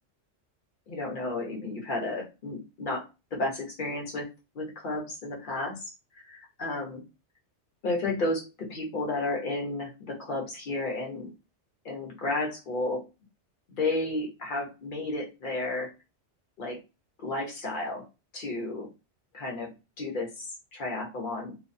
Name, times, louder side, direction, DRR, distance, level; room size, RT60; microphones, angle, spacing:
voice 1, 0.9-4.3 4.5-5.9 6.2-7.0 7.8-11.3 11.8-13.1 13.8-15.9 16.6-16.8 17.2-18.0 18.3-18.9 19.3-20.5 20.7-21.6, left 2 dB, 50° left, 0 dB, 0.9 m, -32 dB
2.4 x 2.3 x 2.5 m, 0.28 s
omnidirectional pair, 1.2 m